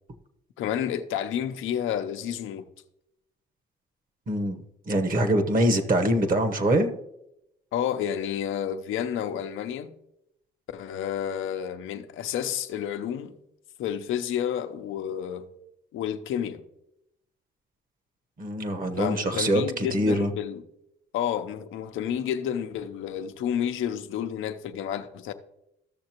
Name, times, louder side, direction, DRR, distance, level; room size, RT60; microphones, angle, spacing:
voice 1, 0.6-2.7 7.7-9.9 10.7-13.3 13.8-15.4 15.9-16.6 19.0-20.6 21.1-25.3, left 9 dB, 85° left, 0.7 m, -30 dB
voice 2, 4.3-4.6 4.9-6.9 18.4-20.3, right 1 dB, 45° right, 1.1 m, -24 dB
14.0 x 6.5 x 2.9 m
cardioid pair, 90°, 20 cm